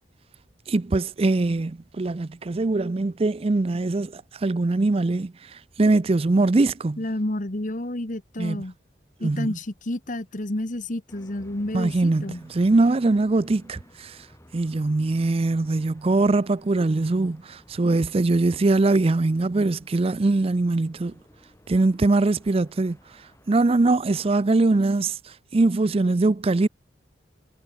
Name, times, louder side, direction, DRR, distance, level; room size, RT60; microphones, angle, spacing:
voice 1, 0.7-7.0 8.4-8.6 9.2-9.6 11.7-14.2 14.5-21.1 21.7-23.0 23.5-26.7, right 2 dB, 30° right, 0.5 m, -22 dB
voice 2, 7.0-8.7 9.2-12.4, left 1 dB, 45° left, 1.5 m, -30 dB
sound 1, 11.1-24.4, equal, 15° left, 7.5 m, -54 dB
head